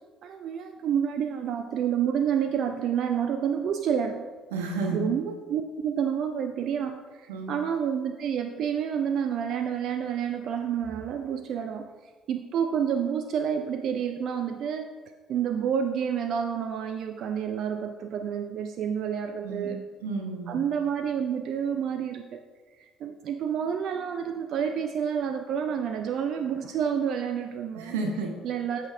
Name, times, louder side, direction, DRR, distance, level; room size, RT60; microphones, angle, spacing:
voice 1, 0.2-4.3 4.9-14.9 15.3-19.8 20.5-22.4 22.8-27.9 28.4-28.9, right 8 dB, 55° right, 8 dB, 0.4 m, -29 dB
voice 2, 4.5-5.1 7.3-7.5 19.4-19.7 20.0-20.5 27.7-28.4, right 3 dB, 70° right, 3 dB, 1.1 m, -31 dB
14.0 x 5.9 x 2.4 m, 1.5 s
figure-of-eight pair, 50°, 0 cm